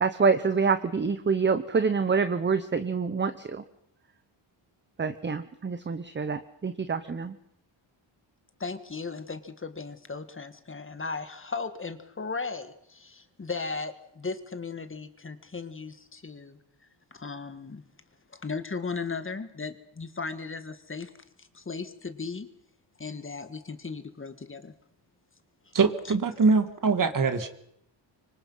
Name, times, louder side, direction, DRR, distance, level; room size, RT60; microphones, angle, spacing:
voice 1, 0.0-3.6 5.0-7.3, right 5 dB, 25° right, 11 dB, 0.9 m, -26 dB
voice 2, 8.6-16.6 17.1-17.8 18.3-21.1 21.4-22.5 23.0-24.7, left 4 dB, 25° left, 10 dB, 1.7 m, -36 dB
voice 3, 25.7-27.5, right 4 dB, 40° right, 10 dB, 2.0 m, -23 dB
25.0 x 24.5 x 5.7 m, 0.74 s
wide cardioid pair, 140°, 47 cm